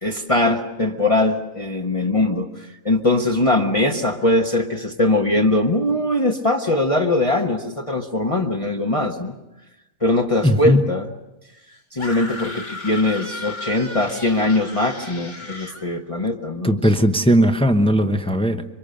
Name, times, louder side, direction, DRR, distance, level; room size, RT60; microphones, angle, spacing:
voice 1, 0.0-9.3 10.0-11.1 11.9-16.9, left 2 dB, 25° left, 1 dB, 1.3 m, -21 dB
voice 2, 10.4-10.8 16.6-18.6, equal, 5° left, 7 dB, 0.8 m, -17 dB
sound 1, 12.0-15.9, left 3 dB, 60° left, 3.0 m, -34 dB
27.0 x 24.0 x 6.7 m, 0.95 s
omnidirectional pair, 1.4 m